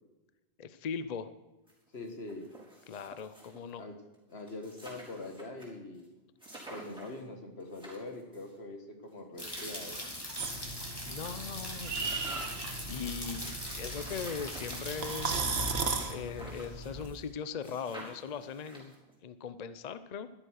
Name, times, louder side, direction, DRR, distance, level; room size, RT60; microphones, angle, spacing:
voice 1, 0.6-1.3 2.9-3.8 11.0-12.4 12.9-15.7 16.1-18.9 19.2-20.3, left 6 dB, 45° left, 13 dB, 0.7 m, -40 dB
sound 1, 1.7-1.8 2.0-3.7 4.1-4.2 4.4-5.7 6.0-6.1 6.4-7.2 7.6-8.5 9.2-10.8 11.2-11.3 11.6-17.3 17.6-19.1, right 1 dB, 5° right, 4.4 m, -50 dB
voice 2, 1.9-2.5 3.8-4.0 4.3-6.0 6.7-10.0, left 2 dB, 80° left, 5 dB, 2.1 m, -43 dB
sound 2, 9.4-15.4, equal, 20° left, 2.9 m, -41 dB
sound 3, 10.4-17.1, right 3 dB, 80° right, 1.6 m, -36 dB
12.5 x 12.0 x 6.5 m, 1.1 s
omnidirectional pair, 1.1 m